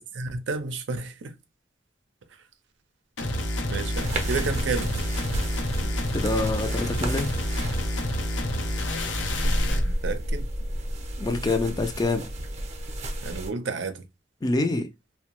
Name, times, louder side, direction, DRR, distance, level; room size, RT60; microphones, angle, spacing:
voice 1, 0.1-1.3 3.7-4.9 5.7-5.9 9.8-10.5 13.2-14.1, right 4 dB, 80° right, 0.5 m, -31 dB
sound 1, 3.2-9.9, left 1 dB, 85° left, 0.6 m, -28 dB
sound 2, 3.9-13.5, equal, 40° right, 0.6 m, -31 dB
voice 2, 6.1-7.3 11.2-12.3 14.4-14.9, left 2 dB, 20° left, 0.4 m, -26 dB
2.6 x 2.2 x 2.9 m
head